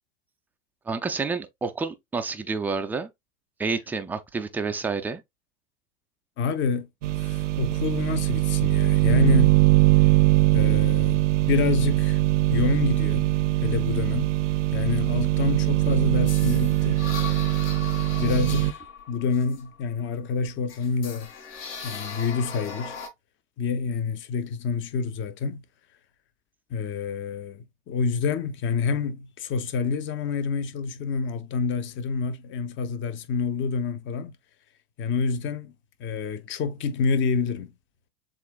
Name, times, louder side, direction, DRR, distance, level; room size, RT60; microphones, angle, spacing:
voice 1, 0.9-3.1 3.6-5.2, right 4 dB, 5° right, 0.3 m, -29 dB
voice 2, 6.4-6.9 7.2-9.6 10.5-11.2 11.5-12.2 12.5-13.3 13.6-14.3 14.7-17.1 18.2-18.8 19.1-21.3 21.8-23.0 23.6-25.6 26.7-34.3 35.0-35.7 36.0-37.7, left 5 dB, 30° left, 0.8 m, -27 dB
sound 1, 7.0-18.7, right 16 dB, 75° right, 0.6 m, -22 dB
sound 2, 16.3-20.2 20.7-23.1, left 5 dB, 60° left, 2.2 m, -38 dB
7.2 x 2.5 x 2.4 m
hypercardioid pair, 100°, 37 cm